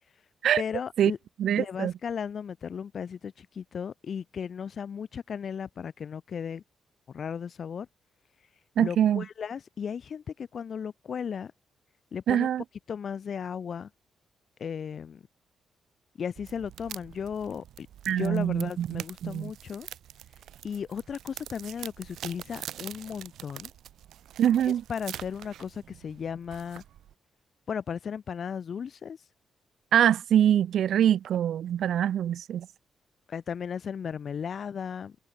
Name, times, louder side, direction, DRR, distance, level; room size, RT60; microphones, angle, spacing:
voice 1, 0.6-1.2 1.6-6.6 7.1-7.9 8.8-11.5 12.1-12.5 12.9-13.9 14.6-15.2 16.2-19.9 20.6-23.7 24.9-26.8 27.7-29.2 33.3-35.2, left 7 dB, 45° left, 0.6 m, -35 dB
voice 2, 1.4-1.9 8.8-9.2 12.3-12.6 18.1-19.5 24.4-24.8 29.9-32.7, right 10 dB, 65° right, 0.4 m, -24 dB
sound 1, 16.4-27.1, right 11 dB, 90° right, 1.0 m, -45 dB
wide cardioid pair, 170°, 0 cm